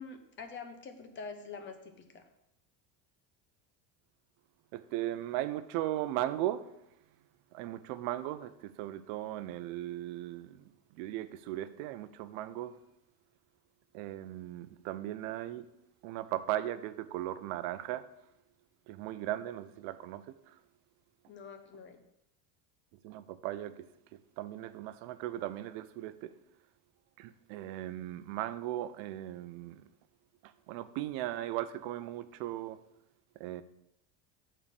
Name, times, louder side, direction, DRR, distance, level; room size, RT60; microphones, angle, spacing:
voice 1, 0.0-2.3 21.3-22.0, left 5 dB, 30° left, 0.9 m, -46 dB
voice 2, 4.7-6.7 7.5-10.6 11.0-12.7 13.9-15.6 16.0-18.0 18.9-20.2 23.0-23.7 24.4-26.3 27.2-29.8 30.7-32.8 33.4-33.6, right 14 dB, 70° right, 0.7 m, -37 dB
7.0 x 4.4 x 6.6 m
cardioid pair, 155°, 40 cm